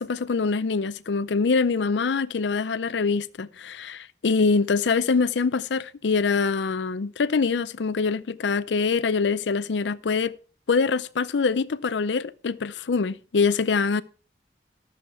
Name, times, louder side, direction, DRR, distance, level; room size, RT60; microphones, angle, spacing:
voice 1, 0.0-10.3 10.7-14.0, left 4 dB, 85° left, 0.5 m, -24 dB
13.0 x 7.2 x 4.6 m
head